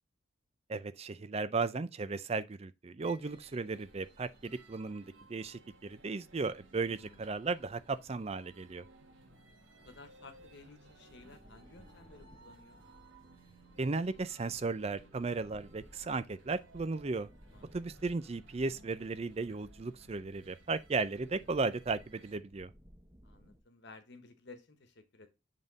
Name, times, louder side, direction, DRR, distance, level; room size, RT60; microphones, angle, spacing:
voice 1, 0.7-8.9 13.8-17.3 17.7-22.7, right 3 dB, 30° right, 0.4 m, -35 dB
sound 1, 3.0-22.4, right 2 dB, 65° right, 1.4 m, -61 dB
voice 2, 6.8-7.3 9.8-12.8 17.5-17.7 23.2-25.3, left 3 dB, 60° left, 1.2 m, -55 dB
sound 2, 8.8-23.6, equal, 10° right, 0.8 m, -60 dB
7.5 x 3.6 x 4.0 m
head